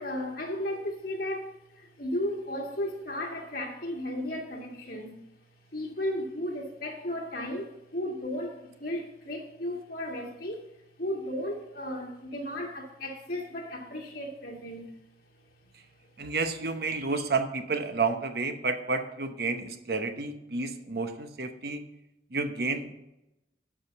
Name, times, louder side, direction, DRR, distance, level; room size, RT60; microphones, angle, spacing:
voice 1, 0.0-5.2 5.7-10.7 11.0-14.9 16.9-17.2, left 1 dB, 55° left, 2.1 m, -35 dB
voice 2, 16.2-21.8 22.3-22.9, right 4 dB, 60° right, 0.9 m, -30 dB
12.5 x 5.1 x 5.9 m
head